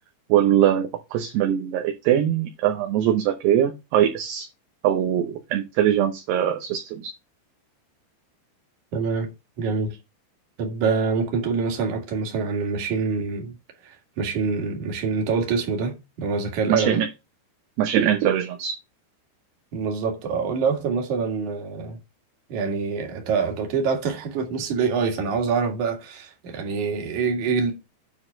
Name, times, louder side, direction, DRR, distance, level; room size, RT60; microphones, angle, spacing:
voice 1, 0.3-4.5 4.8-7.1 16.7-17.1 17.8-18.8, right 10 dB, 75° right, 2.6 m, -22 dB
voice 2, 8.9-9.3 9.6-10.0 10.6-13.5 13.8-17.0 19.7-22.0 22.5-27.7, right 5 dB, 50° right, 2.9 m, -25 dB
9.8 x 4.0 x 6.3 m
omnidirectional pair, 5.4 m